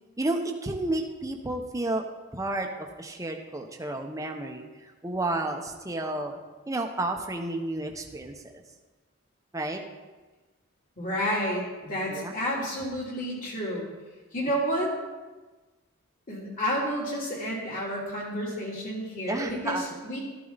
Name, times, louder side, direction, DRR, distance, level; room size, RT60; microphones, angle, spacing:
voice 1, 0.2-2.0 2.3-4.6 5.0-6.4 6.7-8.6 9.5-9.8 12.1-12.3 19.3-20.0, right 2 dB, 15° right, 3 dB, 1.1 m, -31 dB
voice 2, 11.0-13.9 14.3-14.9 16.3-20.2, equal, 40° left, -4 dB, 3.5 m, -30 dB
13.5 x 12.0 x 4.2 m, 1.2 s
head